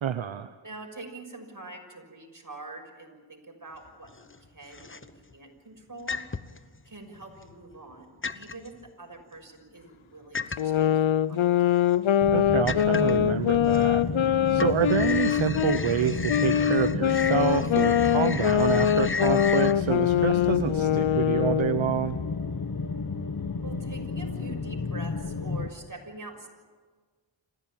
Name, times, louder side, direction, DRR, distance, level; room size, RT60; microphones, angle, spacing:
voice 1, 0.0-0.5 12.3-14.0 14.5-22.2, right 8 dB, 70° right, 10 dB, 0.9 m, -28 dB
voice 2, 0.6-5.1 5.3-6.2 6.8-11.8 23.6-26.5, right 2 dB, 40° right, 2 dB, 6.3 m, -45 dB
sound 1, 3.9-4.4 4.7-5.3 6.1-6.6 7.2-7.9 8.2-8.7 10.3-10.9 11.5-11.6 12.0-12.1 12.7-13.3 13.7-14.3 14.5-19.7, left 4 dB, 25° left, 1.0 m, -34 dB
sound 2, 10.6-15.8 16.3-21.9, left 10 dB, 70° left, 0.7 m, -23 dB
sound 3, 12.2-25.7, left 4 dB, 45° left, 1.5 m, -32 dB
27.0 x 15.5 x 9.0 m, 1.5 s
cardioid pair, 50°, 48 cm